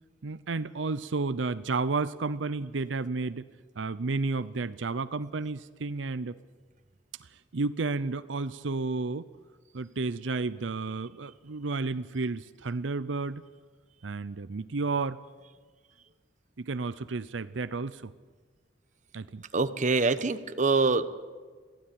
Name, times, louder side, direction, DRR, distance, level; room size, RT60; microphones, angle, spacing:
voice 1, 0.2-3.5 3.8-6.4 7.2-9.3 9.7-13.4 14.0-15.2 16.6-18.1 19.1-19.4, right 3 dB, 85° right, 14 dB, 0.6 m, -32 dB
voice 2, 19.5-21.0, right 3 dB, 40° right, 11 dB, 1.0 m, -25 dB
22.5 x 15.5 x 8.8 m, 1.5 s
head